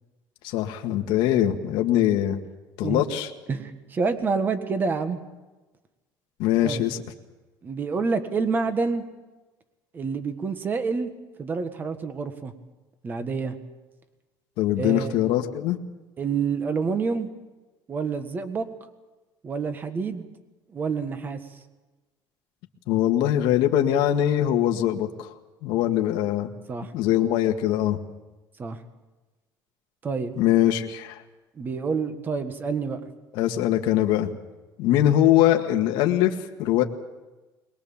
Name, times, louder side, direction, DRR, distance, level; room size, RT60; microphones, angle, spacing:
voice 1, 0.4-2.4 2.8-3.3 6.4-7.0 14.6-15.8 22.9-25.3 25.6-26.5 26.9-28.0 30.4-31.2 33.3-34.3 34.8-36.3 36.6-36.8, left 12 dB, 90° left, 4 dB, 1.8 m, -22 dB
voice 2, 3.5-5.2 6.6-6.9 7.6-9.0 9.9-11.1 11.4-12.5 13.0-13.5 14.8-15.2 16.2-17.3 17.9-18.6 19.4-20.2 20.7-21.4 26.7-26.9 28.6-28.8 30.0-30.3 31.5-33.0, right 5 dB, 25° right, 9 dB, 1.6 m, -27 dB
22.5 x 21.0 x 7.2 m, 1.1 s
cardioid pair, 170°, 8 cm